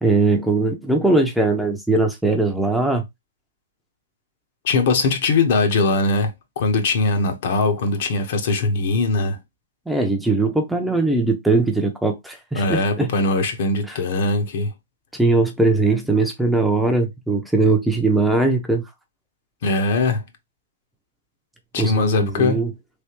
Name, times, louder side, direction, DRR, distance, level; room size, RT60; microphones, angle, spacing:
voice 1, 0.0-3.0 9.9-13.1 13.9-14.0 15.2-18.8 21.8-22.7, right 3 dB, ahead, 0.5 m, -20 dB
voice 2, 4.6-9.4 12.6-14.7 19.6-20.2 21.7-22.6, left 3 dB, 55° left, 0.9 m, -21 dB
3.3 x 2.8 x 2.9 m
hypercardioid pair, 145°, 0 cm